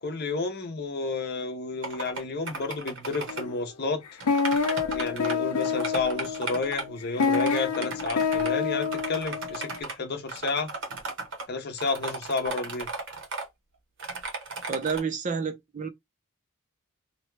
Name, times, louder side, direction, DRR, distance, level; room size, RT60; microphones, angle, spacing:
voice 1, 0.0-4.0 4.9-10.7 11.5-12.9, left 3 dB, 50° left, 0.7 m, -31 dB
sound 1, 1.8-2.2 2.5-3.4 4.2-5.4 5.6-6.8 7.2-8.5 8.8-10.0 10.3-11.5 11.8-13.5 14.0-15.0, right 3 dB, 55° right, 0.9 m, -35 dB
sound 2, 3.3-3.7 4.1-9.8, left 5 dB, 85° left, 0.6 m, -28 dB
voice 2, 14.7-15.9, right 5 dB, 35° right, 0.5 m, -29 dB
2.8 x 2.2 x 3.1 m
head